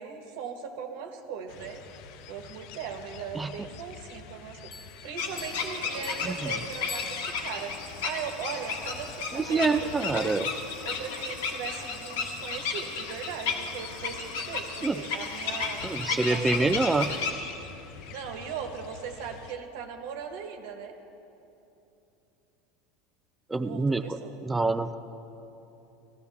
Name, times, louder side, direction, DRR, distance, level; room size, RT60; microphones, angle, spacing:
voice 1, 0.0-1.8 2.3-4.6 5.0-7.7 8.0-10.3 10.8-15.8 16.1-17.3 18.1-20.9 23.6-24.4, right 7 dB, 75° right, 5 dB, 1.3 m, -39 dB
sound 1, 1.5-19.6, left 7 dB, 60° left, 0.6 m, -46 dB
sound 2, 4.7-7.7, left 4 dB, 30° left, 0.9 m, -45 dB
sound 3, 5.2-17.3, left 5 dB, 85° left, 1.7 m, -34 dB
voice 2, 9.3-10.4 14.8-15.0 15.8-17.1 23.5-25.0, right 3 dB, 10° right, 10 dB, 0.4 m, -26 dB
15.5 x 14.5 x 3.5 m, 3.0 s
supercardioid pair, 125°, 0 cm